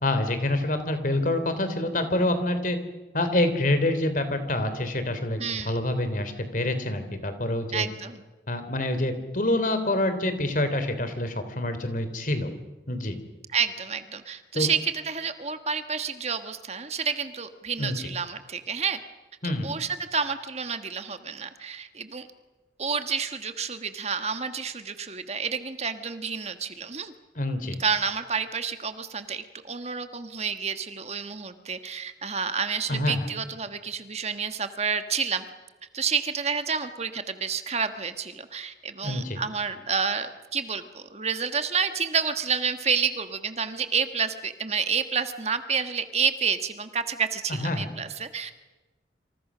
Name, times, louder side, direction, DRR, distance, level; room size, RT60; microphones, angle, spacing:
voice 1, 0.0-2.8 3.1-7.9 8.5-12.5 12.9-13.1 14.5-14.7 17.8-18.0 19.4-19.7 27.3-27.8 32.9-33.2 39.0-39.4 47.5-47.9, left 1 dB, 50° left, 9 dB, 3.3 m, -26 dB
voice 2, 5.4-5.7 7.7-8.2 13.5-19.0 19.6-22.3 22.8-27.1 27.8-35.4 35.9-48.5, right 6 dB, 35° right, 9 dB, 1.4 m, -29 dB
28.5 x 26.5 x 6.2 m, 1.2 s
head